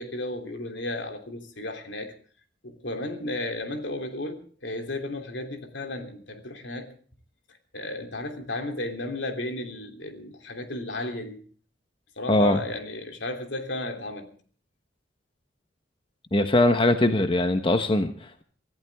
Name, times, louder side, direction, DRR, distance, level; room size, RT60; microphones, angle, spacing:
voice 1, 0.0-2.1 2.6-6.9 7.7-11.4 12.2-14.3, left 2 dB, 70° left, 5 dB, 3.1 m, -34 dB
voice 2, 12.3-12.6 16.3-18.4, left 1 dB, 30° left, 8 dB, 1.0 m, -21 dB
25.0 x 14.5 x 3.5 m, 0.43 s
head